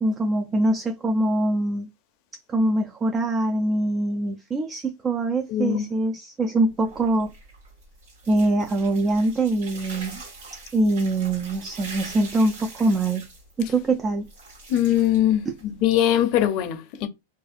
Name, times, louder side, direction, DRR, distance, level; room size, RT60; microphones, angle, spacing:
voice 1, 0.0-1.9 2.5-7.3 8.3-10.2 10.5-13.3 13.6-14.3, right 2 dB, 25° right, 0.4 m, -23 dB
voice 2, 5.5-5.9 14.7-15.5 15.8-17.1, left 11 dB, 50° left, 0.6 m, -21 dB
sound 1, 6.7-15.8, right 3 dB, 75° right, 1.3 m, -43 dB
2.5 x 2.4 x 2.3 m
hypercardioid pair, 110°, 0 cm